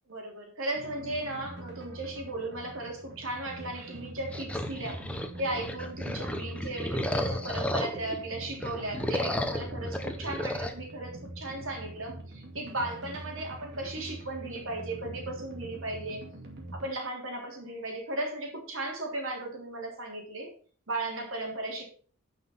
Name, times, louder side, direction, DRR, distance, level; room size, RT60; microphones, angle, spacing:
voice 1, 0.1-5.0 5.4-16.2 16.7-20.5 20.9-21.8, right 2 dB, 65° right, 0 dB, 3.5 m, -36 dB
sound 1, 0.7-16.9, right 1 dB, 50° right, 2.3 m, -44 dB
sound 2, 4.3-8.2 8.5-10.7, left 1 dB, 5° left, 0.8 m, -33 dB
10.5 x 5.9 x 5.7 m, 0.43 s
head